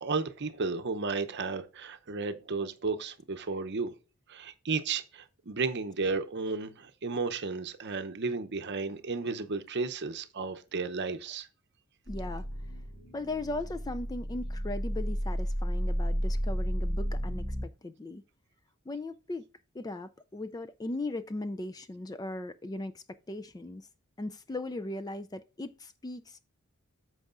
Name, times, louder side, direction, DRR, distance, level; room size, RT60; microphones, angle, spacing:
voice 1, 0.0-3.9 4.3-11.5, right 4 dB, 50° right, 0.7 m, -33 dB
sound 1, 12.1-17.6, equal, 45° left, 3.5 m, -32 dB
voice 2, 12.1-12.4 13.1-18.2 18.9-19.5 19.7-23.9 24.2-26.4, left 2 dB, 15° left, 0.3 m, -38 dB
13.5 x 4.7 x 2.5 m
head